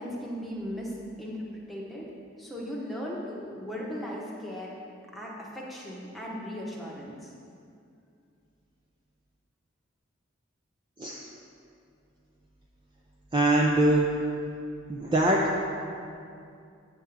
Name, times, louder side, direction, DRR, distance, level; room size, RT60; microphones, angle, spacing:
voice 1, 0.0-2.1 2.4-4.7 5.1-7.3, equal, ahead, -5 dB, 1.0 m, -37 dB
voice 2, 13.3-14.0 14.9-15.4, right 1 dB, 25° right, -3 dB, 0.5 m, -22 dB
8.8 x 3.6 x 6.8 m, 2.4 s
head